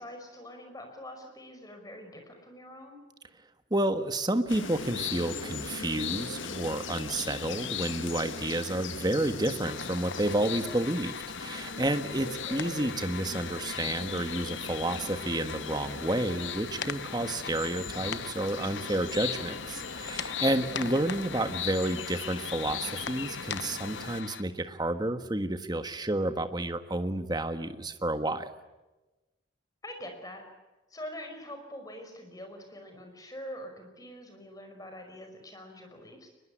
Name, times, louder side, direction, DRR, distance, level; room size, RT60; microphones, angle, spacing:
voice 1, 0.0-3.0 12.4-12.7 20.7-21.0 29.8-30.4 30.9-36.3, left 1 dB, 20° left, 5 dB, 5.3 m, -44 dB
voice 2, 3.7-28.5, right 1 dB, 20° right, 9 dB, 1.5 m, -30 dB
sound 1, 4.5-24.2, left 6 dB, 80° left, 1.7 m, -39 dB
sound 2, 9.6-24.4, left 6 dB, 65° left, 1.1 m, -41 dB
23.0 x 21.5 x 9.9 m, 1.1 s
head